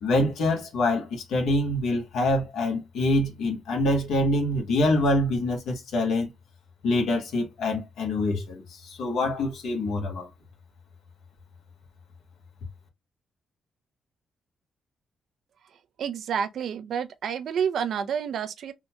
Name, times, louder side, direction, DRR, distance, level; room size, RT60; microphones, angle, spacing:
voice 1, 0.0-6.3 6.8-10.3, left 1 dB, 80° left, 1.1 m, -25 dB
voice 2, 16.0-18.7, right 7 dB, 70° right, 0.5 m, -29 dB
3.7 x 2.2 x 2.8 m
cardioid pair, 70°, 0 cm